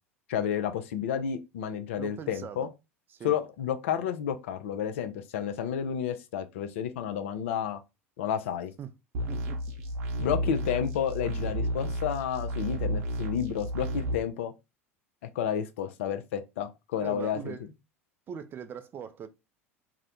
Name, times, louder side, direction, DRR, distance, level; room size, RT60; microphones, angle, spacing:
voice 1, 0.3-2.7 3.2-7.8 8.2-8.7 10.2-14.5 15.4-17.5, left 8 dB, 60° left, 0.4 m, -31 dB
voice 2, 2.0-2.7 3.1-3.4 8.8-8.9 9.3-9.8 10.5-10.6 17.0-17.7 18.3-19.3, right 8 dB, 30° right, 0.3 m, -41 dB
sound 1, 9.1-14.1, right 1 dB, 55° right, 0.7 m, -32 dB
2.4 x 2.0 x 2.8 m
figure-of-eight pair, 80°, 8 cm